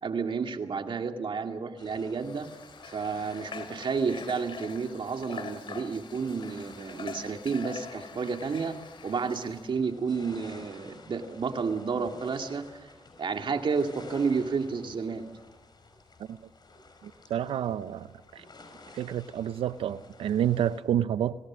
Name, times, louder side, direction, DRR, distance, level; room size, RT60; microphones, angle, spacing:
voice 1, 0.0-2.5 2.9-8.8 9.0-12.7 13.2-15.3, right 5 dB, 65° right, 2.4 m, -31 dB
sound 1, 1.8-20.8, left 3 dB, 50° left, 5.5 m, -53 dB
Water / Water tap faucet, 2.2-9.7, left 5 dB, 70° left, 2.8 m, -44 dB
voice 2, 17.0-18.1 18.3-18.4 18.9-21.4, right 10 dB, 90° right, 0.7 m, -29 dB
26.0 x 18.0 x 6.3 m
supercardioid pair, 45°, 9 cm